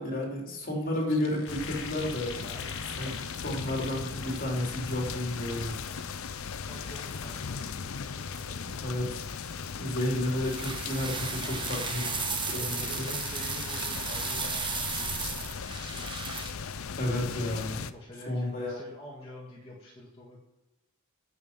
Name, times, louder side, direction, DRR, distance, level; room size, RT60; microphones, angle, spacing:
voice 1, 0.0-2.3 3.0-3.1 3.4-5.8 8.8-9.2 9.8-13.1 17.0-17.8 18.3-18.8, left 1 dB, 45° left, 0 dB, 3.3 m, -32 dB
sound 1, 0.6-0.7 0.9-4.9 5.3-6.1 6.6-7.5 7.9-10.9 11.2-11.5, left 6 dB, 65° left, 1.5 m, -46 dB
sound 2, 1.5-17.9, left 5 dB, 85° left, 0.6 m, -38 dB
voice 2, 2.3-2.8 6.7-8.8 11.4-11.9 12.5-15.7 17.9-20.4, left 1 dB, 25° left, -5 dB, 2.0 m, -47 dB
sound 3, 10.4-16.5, right 5 dB, 25° right, 1.1 m, -35 dB
9.6 x 7.1 x 7.4 m, 0.96 s
head